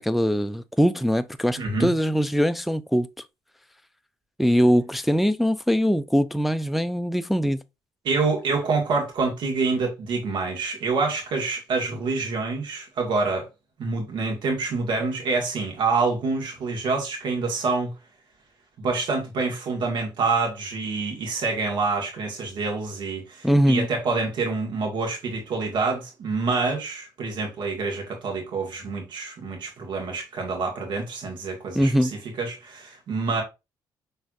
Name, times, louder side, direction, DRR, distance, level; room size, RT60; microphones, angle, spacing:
voice 1, 0.0-3.1 4.4-7.6 23.4-23.9 31.7-32.1, equal, ahead, 0.3 m, -22 dB
voice 2, 1.6-1.9 8.0-13.5 13.8-17.9 18.8-32.1 32.4-33.4, right 4 dB, 65° right, 1.6 m, -27 dB
6.0 x 3.2 x 2.5 m
cardioid pair, 95°, 8 cm